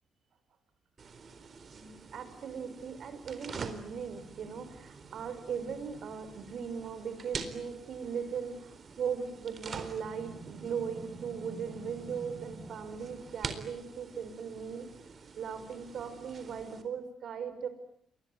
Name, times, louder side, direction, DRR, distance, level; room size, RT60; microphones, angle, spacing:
sound 1, 1.0-16.8, right 5 dB, 45° right, 4.1 m, -46 dB
voice 1, 1.7-14.9 15.4-17.7, right 6 dB, 60° right, 10 dB, 6.1 m, -38 dB
28.0 x 22.0 x 9.7 m, 0.66 s
cardioid pair, 90°, 0 cm